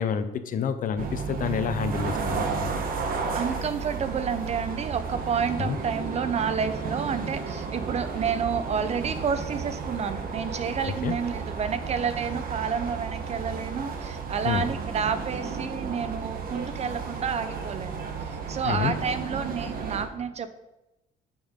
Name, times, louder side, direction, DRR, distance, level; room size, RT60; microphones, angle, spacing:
voice 1, 0.0-2.7 5.6-5.8 10.9-11.1 14.4-14.7 18.6-18.9, left 7 dB, 50° left, 10 dB, 0.8 m, -28 dB
sound 1, 1.0-20.0, right 5 dB, 60° right, 1.3 m, -33 dB
sound 2, 1.7-10.8, left 2 dB, 15° left, 2.0 m, -49 dB
voice 2, 3.3-20.6, right 6 dB, 40° right, 12 dB, 0.7 m, -30 dB
10.5 x 6.0 x 3.7 m, 0.93 s
cardioid pair, 110°, 17 cm